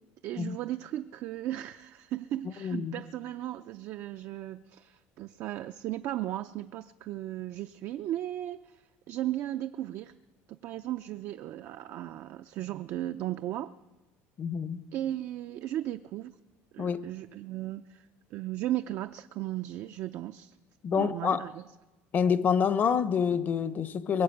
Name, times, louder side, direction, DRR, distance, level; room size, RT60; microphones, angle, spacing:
voice 1, 0.2-10.1 10.5-13.7 14.9-16.3 16.7-20.6 20.9-21.6, right 13 dB, 55° right, 0.5 m, -36 dB
voice 2, 2.6-3.0 14.4-14.8 16.8-17.0 20.8-21.4 22.1-24.2, left 7 dB, 35° left, 0.7 m, -27 dB
22.5 x 7.7 x 7.8 m
cardioid pair, 140°, 6 cm